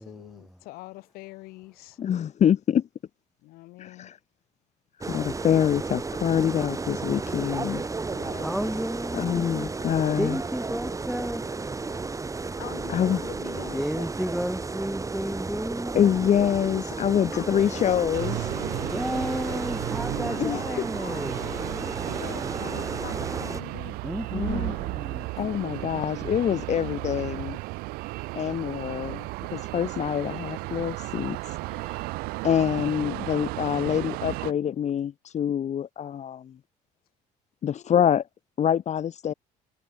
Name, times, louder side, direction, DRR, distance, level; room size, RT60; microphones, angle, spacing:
voice 1, 0.0-2.0 3.4-4.1 7.9-8.9 12.6-14.1 17.0-24.0 33.1-33.5 33.8-33.9, left 21 dB, 75° left, 4.7 m, -44 dB
voice 2, 2.0-2.9 3.8-4.1 5.0-7.8 9.1-10.4 12.9-13.2 15.9-18.4 20.4-20.6 24.3-24.8 25.4-27.6 28.3-31.4 31.7-32.0 32.4-36.6 37.6-38.2 38.6-39.3, left 9 dB, 50° left, 1.7 m, -25 dB
sound 1, 5.0-23.6, right 3 dB, 20° right, 1.9 m, -33 dB
voice 3, 8.4-9.7 10.2-11.6 13.7-16.0 18.8-21.4 24.0-25.3, equal, ahead, 0.7 m, -32 dB
sound 2, 18.1-34.5, right 24 dB, 80° right, 3.2 m, -34 dB
supercardioid pair, 80°, 16 cm